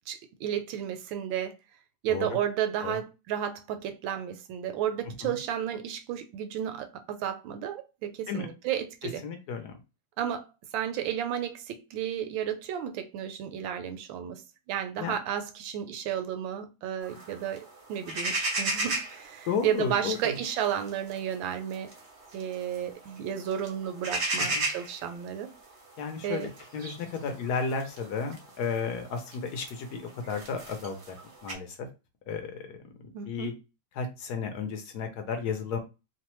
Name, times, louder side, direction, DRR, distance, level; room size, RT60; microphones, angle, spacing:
voice 1, 0.1-1.5 2.0-9.2 10.2-10.5 10.7-14.4 14.7-21.9 22.3-25.5 26.2-26.5 33.1-33.5, right 9 dB, 85° right, 1.3 m, -32 dB
voice 2, 9.2-9.7 15.0-15.2 19.5-20.4 24.5-24.6 26.0-31.1 31.4-31.9 32.3-33.5 34.0-35.8, left 5 dB, 70° left, 1.0 m, -33 dB
sound 1, 17.0-31.5, right 2 dB, 60° right, 0.7 m, -37 dB
3.1 x 2.1 x 3.0 m
omnidirectional pair, 2.1 m